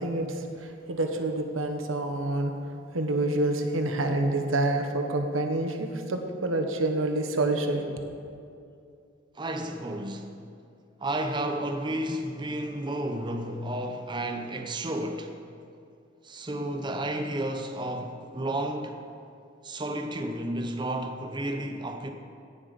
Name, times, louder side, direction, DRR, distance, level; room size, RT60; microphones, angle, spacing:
voice 1, 0.0-2.5 2.9-7.8, right 2 dB, 90° right, 1.2 m, -27 dB
voice 2, 9.4-10.3 11.0-15.3 16.2-19.0 19.6-22.1, right 1 dB, 25° right, 0.6 m, -32 dB
16.5 x 7.4 x 5.3 m
head